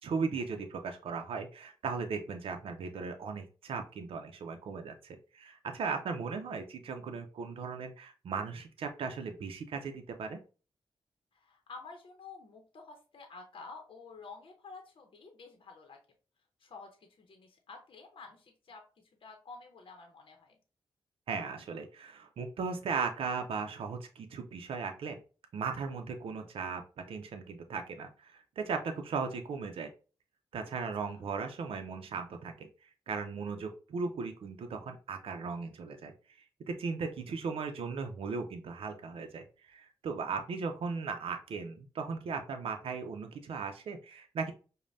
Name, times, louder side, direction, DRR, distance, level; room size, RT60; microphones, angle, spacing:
voice 1, 0.0-10.4 21.3-25.2 25.5-26.8 27.1-29.9 30.5-32.7 33.1-36.1 36.7-44.5, right 5 dB, 80° right, 5 dB, 0.5 m, -37 dB
voice 2, 11.3-16.0 16.6-18.8 19.2-20.6 30.8-31.2, left 4 dB, 65° left, 3 dB, 0.7 m, -50 dB
5.1 x 2.1 x 2.5 m, 0.35 s
cardioid pair, 70°, 9 cm